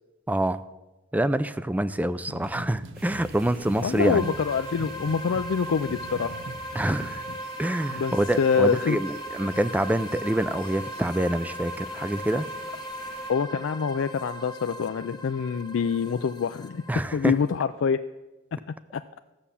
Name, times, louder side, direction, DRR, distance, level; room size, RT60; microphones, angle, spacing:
voice 1, 0.3-0.6 1.1-4.3 6.7-7.2 7.6-12.5 16.9-17.3, right 1 dB, 10° right, 15 dB, 0.4 m, -26 dB
sound 1, 2.3-7.4, right 3 dB, 75° right, 0.6 m, -42 dB
sound 2, 2.9-13.3, right 2 dB, 55° right, 2.3 m, -48 dB
voice 2, 3.8-6.4 7.9-9.0 13.3-16.8 17.1-18.0 18.5-19.0, left 6 dB, 85° left, 8 dB, 0.4 m, -26 dB
sound 3, 4.0-17.6, equal, 20° left, 0.8 m, -38 dB
14.5 x 7.2 x 6.9 m, 1.1 s
head